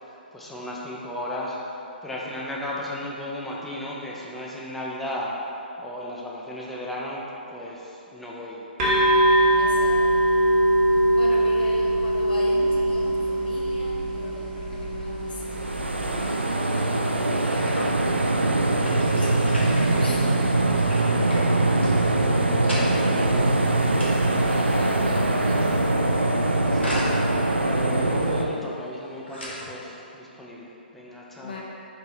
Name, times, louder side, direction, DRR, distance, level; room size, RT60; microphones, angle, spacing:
voice 1, 0.0-5.3 5.8-7.2 7.5-8.7 24.4-25.1 26.4-27.2 27.6-31.5, left 1 dB, 5° left, -5 dB, 0.5 m, -35 dB
sound 1, 8.8-16.3, right 1 dB, 30° right, 1.1 m, -22 dB
voice 2, 9.6-10.0 11.1-15.9 16.7-18.5 18.8-22.1 22.5-23.4 24.5-25.8 31.4-31.6, left 2 dB, 55° left, -4 dB, 0.8 m, -39 dB
sound 2, 12.9-30.0, equal, 85° left, 1.2 m, -40 dB
sound 3, 15.4-28.5, right 2 dB, 85° right, 0.4 m, -22 dB
4.7 x 2.8 x 3.7 m, 2.9 s
figure-of-eight pair, 130°, 6 cm